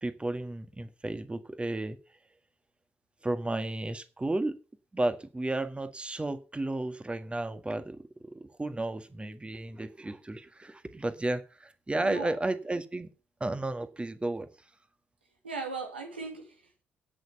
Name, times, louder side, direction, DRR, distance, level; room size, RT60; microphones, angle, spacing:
voice 1, 0.0-2.0 3.2-4.6 4.9-13.1 13.4-14.5, right 2 dB, 20° right, 1.7 m, -33 dB
voice 2, 12.0-12.3 15.4-16.8, right 4 dB, 90° right, 1.6 m, -38 dB
17.5 x 6.6 x 5.6 m
figure-of-eight pair, 40°, 6 cm